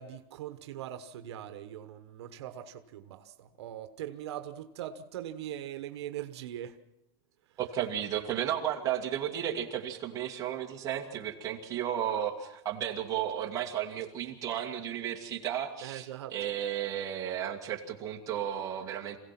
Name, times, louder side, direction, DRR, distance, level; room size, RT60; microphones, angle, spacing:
voice 1, 0.0-6.8 15.8-16.3, right 11 dB, 80° right, 1.2 m, -41 dB
voice 2, 7.6-19.2, right 10 dB, 25° right, 2.3 m, -33 dB
27.0 x 16.5 x 5.9 m
supercardioid pair, 165°, 14 cm